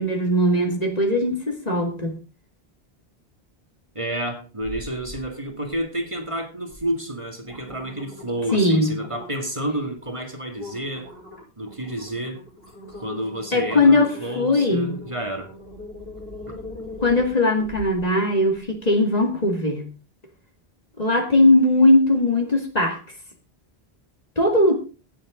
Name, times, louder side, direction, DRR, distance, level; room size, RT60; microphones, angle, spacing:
voice 1, 0.0-2.1 8.5-9.0 13.5-15.0 17.0-19.9 21.0-23.0 24.4-24.7, left 1 dB, 40° left, 3 dB, 2.3 m, -19 dB
voice 2, 3.9-11.1 11.6-12.4 13.0-15.5 16.5-16.6, right 1 dB, 30° right, 3 dB, 2.2 m, -30 dB
sound 1, 4.6-5.3 5.6-6.1 6.7-6.8 7.2-9.5 10.0-10.1 10.5-18.0 18.5-18.6, left 2 dB, 70° left, 6.4 m, -41 dB
17.0 x 7.6 x 3.8 m, 0.32 s
omnidirectional pair, 1.0 m